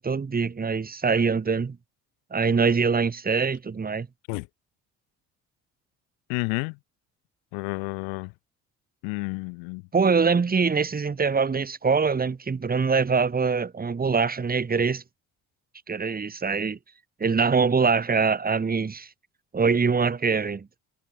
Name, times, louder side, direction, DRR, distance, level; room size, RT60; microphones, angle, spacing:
voice 1, 0.0-1.8 2.3-4.1 9.9-15.0 15.9-16.8 17.2-19.1 19.5-20.7, right 5 dB, 25° right, 1.4 m, -23 dB
voice 2, 6.3-6.8 7.5-8.3 9.0-9.8, left 39 dB, 85° left, 0.7 m, -30 dB
hypercardioid pair, 60°, 35 cm